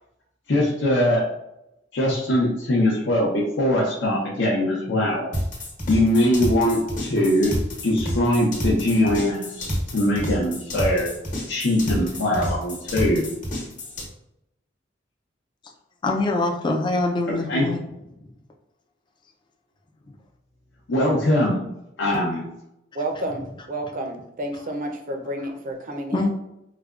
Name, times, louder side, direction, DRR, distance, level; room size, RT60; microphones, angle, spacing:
voice 1, 0.5-1.2 1.9-5.3 5.9-7.5 7.8-11.1 11.5-13.3 17.5-17.7 20.9-21.7 22.0-22.5, left 1 dB, 65° left, -5 dB, 0.7 m, -21 dB
sound 1, 5.3-14.1, equal, 45° left, 1.1 m, -29 dB
voice 2, 16.0-17.8 18.2-18.3 26.1-26.3, left 2 dB, 25° left, 2 dB, 0.4 m, -24 dB
voice 3, 22.9-26.3, right 1 dB, 45° right, 4 dB, 0.5 m, -30 dB
4.8 x 2.2 x 2.4 m, 0.85 s
head